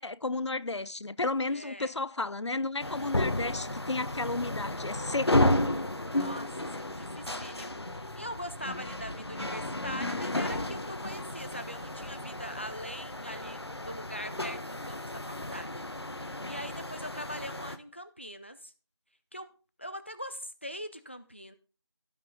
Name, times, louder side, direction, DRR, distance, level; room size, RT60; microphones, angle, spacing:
voice 1, 0.0-5.6, left 3 dB, 90° left, 0.5 m, -33 dB
voice 2, 1.5-1.9 2.8-3.2 6.1-6.5 6.8-15.7 16.1-18.7 19.3-19.5 19.8-21.5, equal, 25° left, 0.5 m, -42 dB
sound 1, 2.8-17.8, left 1 dB, 65° left, 1.2 m, -33 dB
16.0 x 5.4 x 3.8 m
figure-of-eight pair, 175°, 14 cm